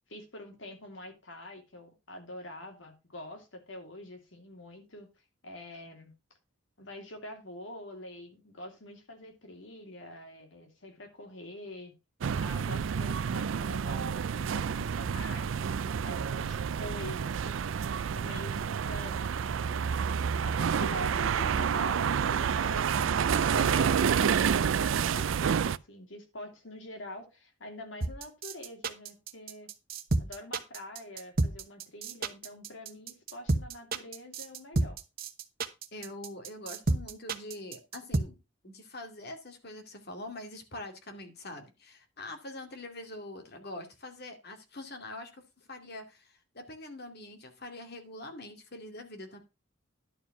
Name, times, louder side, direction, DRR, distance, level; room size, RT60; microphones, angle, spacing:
voice 1, 0.1-5.1 5.4-6.1 6.8-11.9 12.4-15.6 15.8-17.8 18.1-19.9 20.4-29.7 30.2-35.0, left 1 dB, 70° left, 2.8 m, -45 dB
sound 1, 12.2-25.8, right 7 dB, 80° right, 0.4 m, -29 dB
sound 2, 28.0-38.2, right 2 dB, 50° right, 1.1 m, -30 dB
voice 2, 35.9-38.4 38.6-45.4 45.7-49.4, left 1 dB, 55° left, 2.4 m, -44 dB
11.0 x 4.8 x 5.9 m
head